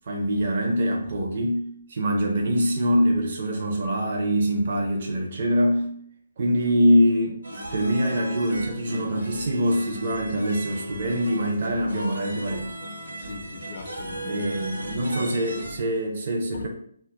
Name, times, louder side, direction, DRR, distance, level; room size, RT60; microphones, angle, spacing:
voice 1, 0.1-1.6 1.9-5.9 6.4-7.4 7.7-12.7 14.2-16.7, equal, 45° right, 1 dB, 0.5 m, -24 dB
sound 1, 7.4-15.8, right 1 dB, 70° right, 0.8 m, -36 dB
voice 2, 13.1-14.5 15.7-15.9 16.5-16.7, left 5 dB, 35° left, 0 dB, 0.4 m, -40 dB
2.2 x 2.1 x 3.8 m, 0.66 s
figure-of-eight pair, 140°, 0 cm